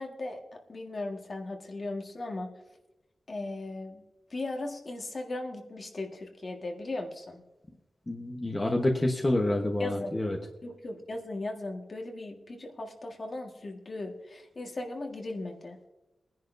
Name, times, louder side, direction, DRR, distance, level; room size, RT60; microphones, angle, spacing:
voice 1, 0.0-2.5 3.3-4.0 4.3-7.4 9.8-10.1 10.6-15.8, left 2 dB, 45° left, 2 dB, 1.7 m, -37 dB
voice 2, 8.1-10.4, left 1 dB, 25° left, 1 dB, 1.1 m, -28 dB
22.0 x 10.5 x 2.7 m, 1.0 s
wide cardioid pair, 95°, 0 cm